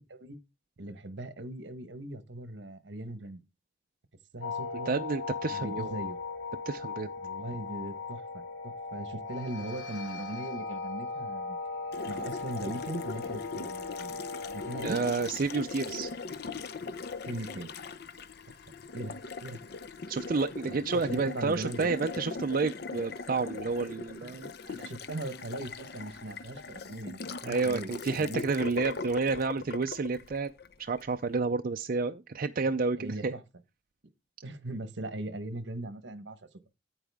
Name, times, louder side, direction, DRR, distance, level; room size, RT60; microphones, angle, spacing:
voice 1, 0.8-3.4 4.3-5.0 5.5-6.2 7.2-11.6 12.1-14.1 14.5-15.0 17.2-17.7 18.5-18.6 18.9-19.6 20.7-21.9 24.6-27.9 28.2-28.5 33.0-33.4 34.4-36.4, right 1 dB, 75° right, 1.2 m, -39 dB
sound 1, 4.4-15.3, left 4 dB, 75° left, 1.5 m, -38 dB
voice 2, 4.9-5.9 6.7-7.1 14.8-16.1 20.1-24.5 27.5-30.5 30.8-33.3, right 4 dB, 50° right, 0.5 m, -30 dB
Water tap faucet, 11.9-31.1, left 4 dB, 60° left, 0.7 m, -40 dB
10.0 x 8.9 x 3.5 m
head